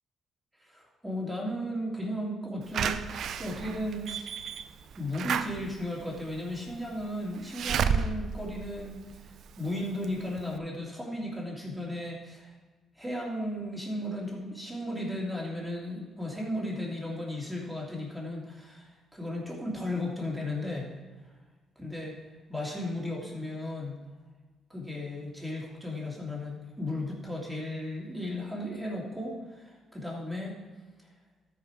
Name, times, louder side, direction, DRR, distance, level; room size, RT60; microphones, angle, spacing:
voice 1, 0.6-3.0 3.4-4.3 5.0-12.5 13.0-20.9 21.8-22.2 22.5-24.0 24.7-30.6, left 1 dB, 5° right, -4 dB, 2.8 m, -35 dB
Slam / Alarm, 2.7-9.6 10.0-10.1 10.4-10.5, right 7 dB, 70° right, 0.5 m, -32 dB
13.0 x 5.2 x 4.8 m, 1.3 s
cardioid pair, 90°, 0 cm